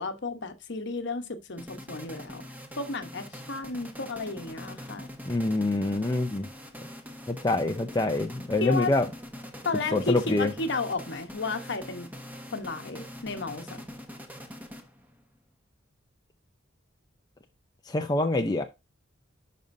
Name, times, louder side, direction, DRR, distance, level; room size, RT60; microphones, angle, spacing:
voice 1, 0.0-2.4 2.8-5.1 8.6-8.9 9.6-12.1 12.5-13.8, left 3 dB, 60° left, 1.0 m, -33 dB
sound 1, 1.6-15.2, equal, 10° right, 1.1 m, -43 dB
voice 2, 5.3-6.5 7.3-9.1 9.9-10.5 17.9-18.6, left 2 dB, 20° left, 0.5 m, -25 dB
10.5 x 5.3 x 2.6 m
head